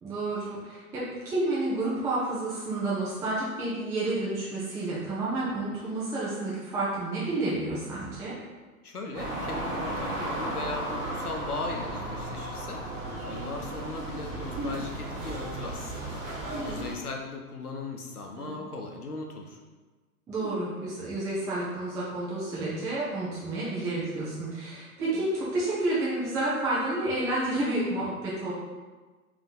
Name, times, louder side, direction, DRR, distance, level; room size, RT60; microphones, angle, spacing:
voice 1, 0.0-8.3 20.3-28.5, right 2 dB, 10° right, -8 dB, 0.4 m, -30 dB
voice 2, 8.8-12.8 13.3-16.2 16.6-19.6, left 2 dB, 90° left, 2 dB, 0.8 m, -38 dB
sound 1, 9.1-17.0, right 1 dB, 25° right, 1.0 m, -35 dB
sound 2, 14.6-14.9 16.5-16.9 18.3-18.6 20.4-20.6 22.5-22.9 25.0-25.2, right 1 dB, 45° right, 1.2 m, -38 dB
3.4 x 2.9 x 3.9 m, 1.3 s
figure-of-eight pair, 100°, 44 cm